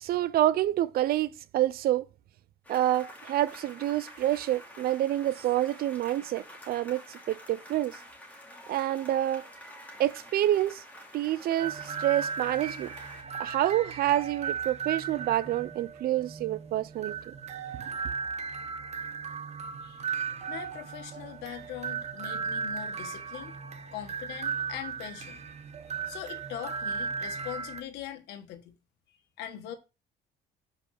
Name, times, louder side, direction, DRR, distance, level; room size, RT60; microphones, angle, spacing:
voice 1, 0.0-2.1 2.7-8.0 8.7-9.4 10.0-10.8 11.1-12.9 13.3-17.3 18.0-18.1, right 13 dB, 65° right, 0.6 m, -28 dB
sound 1, 2.6-13.2, equal, 10° left, 3.1 m, -49 dB
sound 2, 11.6-27.8, right 6 dB, 40° right, 1.2 m, -36 dB
voice 2, 20.5-23.5 23.9-25.4 26.1-28.7 29.4-29.7, left 11 dB, 85° left, 1.5 m, -41 dB
5.4 x 5.4 x 6.4 m
cardioid pair, 110°, 17 cm